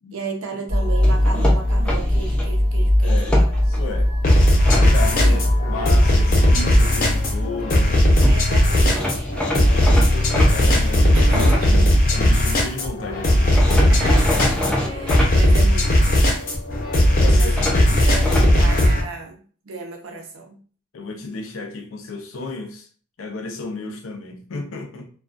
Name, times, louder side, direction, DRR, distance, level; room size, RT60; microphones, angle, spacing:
voice 1, 0.1-3.5 3.8-3.9 5.1-5.4 8.3-9.3 11.1-11.9 13.9-14.4 14.9-16.6 17.3-20.6, right 3 dB, 85° right, 0.6 m, -34 dB
sound 1, 0.7-9.3, left 1 dB, 35° right, 0.6 m, -20 dB
sound 2, 1.0-2.5 3.0-3.8 4.3-4.8 7.9-8.0 8.2-8.4 8.9-12.4 13.5-15.3 17.6-18.5, left 1 dB, 5° left, 0.4 m, -26 dB
voice 2, 3.0-4.1 4.7-5.4 5.7-8.0 9.6-11.1 12.1-13.6 17.2-18.5 20.9-22.9 23.2-25.1, left 3 dB, 85° left, 0.5 m, -33 dB
sound 3, 4.2-19.0, left 1 dB, 45° left, 0.7 m, -17 dB
2.3 x 2.2 x 2.4 m
head